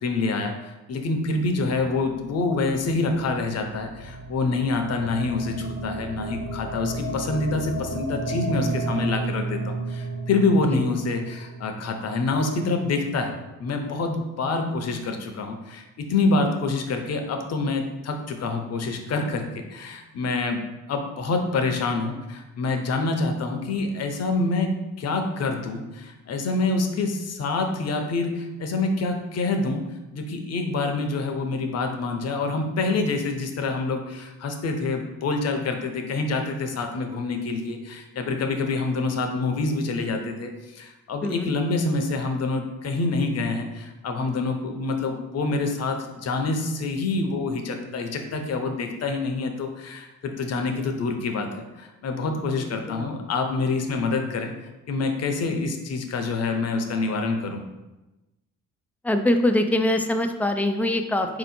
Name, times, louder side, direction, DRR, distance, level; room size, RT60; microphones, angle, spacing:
voice 1, 0.0-13.3 13.6-20.6 20.9-29.8 30.1-54.5 54.9-57.6, left 3 dB, 55° left, 5 dB, 0.7 m, -26 dB
sound 1, 2.0-13.3, right 2 dB, 40° right, 0.9 m, -34 dB
voice 2, 52.6-53.1 59.0-61.3, left 1 dB, 5° left, 6 dB, 0.4 m, -23 dB
4.2 x 2.8 x 4.2 m, 1.0 s
cardioid pair, 90°, 30 cm